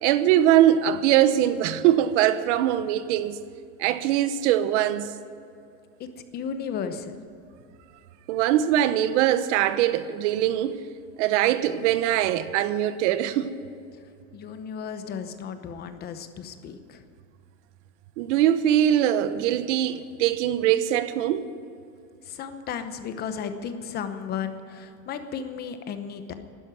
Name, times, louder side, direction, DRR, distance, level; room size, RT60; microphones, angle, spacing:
voice 1, 0.0-3.4 3.8-5.1 8.3-10.8 11.2-13.5 18.2-21.5, right 11 dB, 80° right, 1.0 m, -22 dB
voice 2, 6.3-7.2 14.3-17.0 22.2-26.3, left 7 dB, 25° left, 0.9 m, -34 dB
12.0 x 10.5 x 9.2 m
cardioid pair, 170°, 35 cm